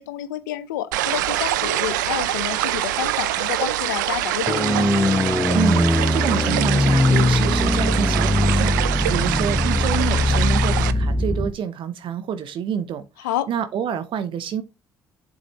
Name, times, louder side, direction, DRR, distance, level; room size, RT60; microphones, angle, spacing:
voice 1, 0.0-4.9 13.2-13.5, left 13 dB, 85° left, 0.7 m, -29 dB
sound 1, 0.9-10.9, right 15 dB, 85° right, 0.5 m, -25 dB
sound 2, 4.5-11.5, left 1 dB, 10° left, 0.9 m, -20 dB
voice 2, 5.5-8.8 9.1-14.6, right 8 dB, 60° right, 0.8 m, -27 dB
7.8 x 6.5 x 3.0 m
hypercardioid pair, 55°, 10 cm